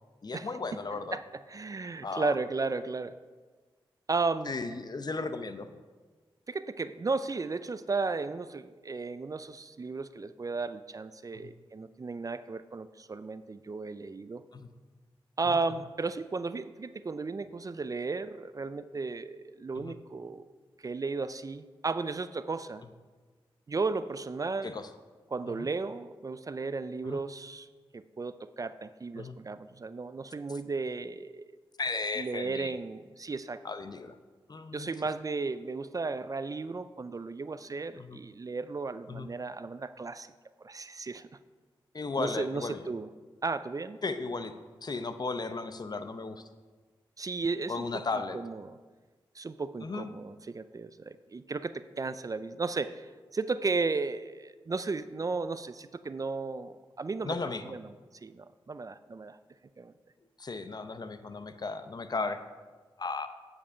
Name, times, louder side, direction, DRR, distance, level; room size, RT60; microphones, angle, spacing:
voice 1, 0.2-1.2 2.0-2.4 4.5-5.7 11.3-11.5 14.5-14.7 15.4-15.6 19.8-20.0 24.6-24.9 25.5-25.7 27.0-27.2 29.1-29.4 31.8-32.7 33.6-34.2 34.5-34.9 38.0-38.2 39.1-39.3 41.9-42.8 44.0-44.5 44.8-46.4 47.7-48.4 49.8-50.1 57.2-57.7 60.4-62.4 63.0-63.3, left 3 dB, 45° left, 10 dB, 0.7 m, -35 dB
voice 2, 1.5-3.2 4.1-4.5 6.5-14.4 15.4-20.5 20.8-22.8 23.7-24.8 25.3-27.7 27.9-31.5 32.2-33.6 34.7-40.3 40.6-41.3 42.2-43.1 43.4-44.0 47.2-47.8 48.3-48.8 49.4-57.3 57.7-57.9 58.2-59.4 59.8-59.9, right 4 dB, 40° right, 13 dB, 0.4 m, -34 dB
9.4 x 5.3 x 5.6 m, 1.4 s
cardioid pair, 45°, 10 cm